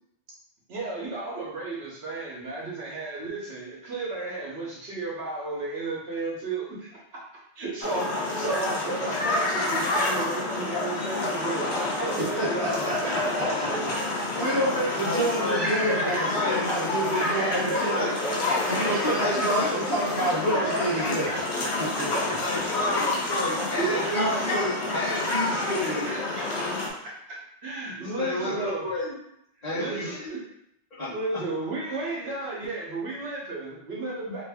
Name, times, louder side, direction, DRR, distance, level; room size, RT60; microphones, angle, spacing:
voice 1, 0.7-7.0 7.6-14.1 14.3-14.5 15.5-16.3 17.1-19.7 20.1-22.5 23.3-24.9 25.3-28.9 29.7-30.4 31.1-34.4, right 2 dB, 70° right, -4 dB, 1.1 m, -33 dB
sound 1, 7.8-26.9, left 2 dB, 70° left, 1.0 m, -28 dB
voice 2, 12.2-13.7 14.0-18.1 18.4-21.4 22.0-22.4, right 1 dB, 20° right, -12 dB, 1.3 m, -29 dB
voice 3, 15.0-15.6 16.3-16.6 17.9-18.0 18.7-19.7 21.0-21.3 22.4-26.1 28.0-29.1 29.6-30.3 31.0-31.1, left 2 dB, 40° left, -11 dB, 1.1 m, -31 dB
3.0 x 2.6 x 3.4 m, 0.76 s
omnidirectional pair, 1.2 m